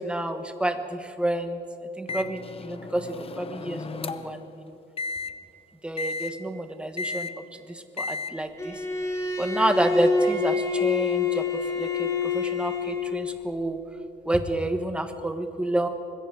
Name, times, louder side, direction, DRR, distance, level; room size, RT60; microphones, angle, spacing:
voice 1, 0.0-1.6 2.0-4.4 5.8-7.3 7.7-8.7 9.4-13.8 14.3-15.9, right 1 dB, 5° right, 7 dB, 1.3 m, -29 dB
Microwave oven, 2.1-4.4 5.0-5.3 6.0-6.3 7.0-7.3 8.0-8.3, left 4 dB, 30° left, 0.8 m, -34 dB
Bowed string instrument, 8.6-13.4, left 5 dB, 15° left, 2.4 m, -27 dB
25.0 x 21.0 x 4.9 m, 2.8 s
cardioid pair, 145°, 18 cm